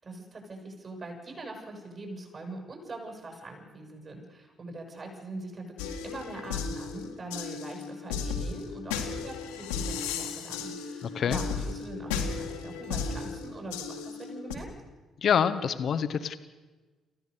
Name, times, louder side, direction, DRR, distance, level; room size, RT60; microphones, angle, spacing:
voice 1, 0.0-14.7, right 2 dB, 40° right, 2 dB, 7.2 m, -42 dB
sound 1, 5.8-14.5, left 5 dB, 75° left, 2.1 m, -35 dB
voice 2, 11.0-11.4 15.2-16.4, left 7 dB, 50° left, 11 dB, 1.2 m, -26 dB
29.0 x 15.5 x 6.7 m, 1.3 s
figure-of-eight pair, 45°, 0 cm